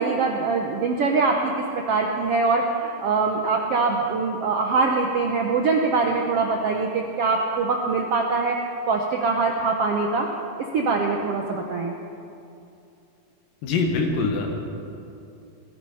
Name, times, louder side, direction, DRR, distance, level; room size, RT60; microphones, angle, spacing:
voice 1, 0.0-8.6 8.9-10.3 10.7-11.9, right 4 dB, 70° right, 1 dB, 1.4 m, -23 dB
voice 2, 13.6-14.5, left 4 dB, 75° left, 2 dB, 3.3 m, -23 dB
19.0 x 13.0 x 5.6 m, 2.6 s
omnidirectional pair, 4.0 m